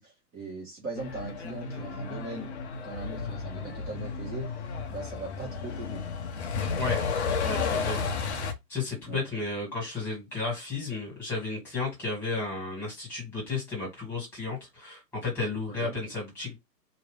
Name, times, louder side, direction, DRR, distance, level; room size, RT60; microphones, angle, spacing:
voice 1, 0.0-2.6 2.8-4.5 4.9-6.0 7.9-8.1 9.1-9.2 15.8-16.0, right 3 dB, 20° right, 1.5 m, -39 dB
Truck, 1.0-8.5, left 5 dB, 40° left, 0.7 m, -32 dB
voice 2, 7.4-8.0 8.7-16.6, left 3 dB, 5° left, 2.0 m, -33 dB
3.0 x 2.8 x 3.2 m
hypercardioid pair, 150°, 49 cm